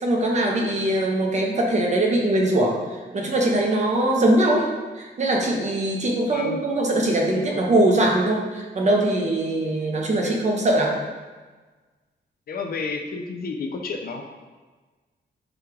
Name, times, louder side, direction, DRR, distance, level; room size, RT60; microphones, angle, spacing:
voice 1, 0.0-2.8 3.1-4.7 5.0-11.0, right 1 dB, 40° right, 0 dB, 0.7 m, -21 dB
voice 2, 6.3-6.6 7.3-7.6 10.2-10.4 12.5-14.2, left 4 dB, 55° left, 3 dB, 0.5 m, -31 dB
5.0 x 2.3 x 4.5 m, 1.3 s
wide cardioid pair, 155°, 19 cm